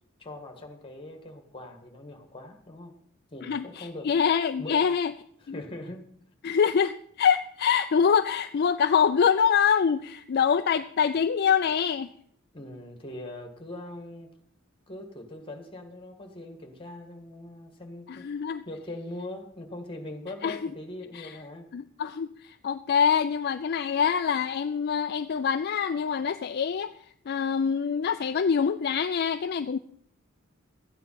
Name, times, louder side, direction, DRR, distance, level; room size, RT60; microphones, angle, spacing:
voice 1, 0.2-2.9 3.3-4.1 4.6-4.8 5.4-6.0 12.5-14.3 14.9-18.3 18.7-21.7, left 1 dB, 25° left, 6 dB, 1.8 m, -41 dB
voice 2, 3.4-5.1 5.5-5.6 6.4-12.1 18.1-18.6 20.4-20.7 21.1-21.4 21.7-26.9 27.3-29.8, left 7 dB, 50° left, 9 dB, 0.4 m, -25 dB
13.5 x 9.3 x 5.8 m, 0.65 s
head